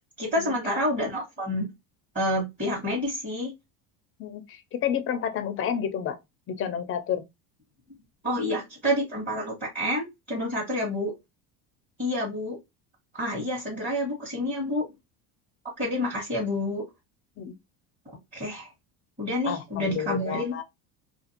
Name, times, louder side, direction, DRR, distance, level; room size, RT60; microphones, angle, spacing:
voice 1, 0.2-1.7 2.1-3.5 8.2-11.1 12.0-12.6 13.1-14.8 15.8-16.8 18.3-18.7 19.2-20.5, left 1 dB, 20° right, 1.1 m, -28 dB
voice 2, 4.2-6.2 6.5-7.2 17.4-17.5 19.4-20.6, left 8 dB, 35° left, 0.4 m, -30 dB
2.5 x 2.4 x 2.7 m
cardioid pair, 135°, 39 cm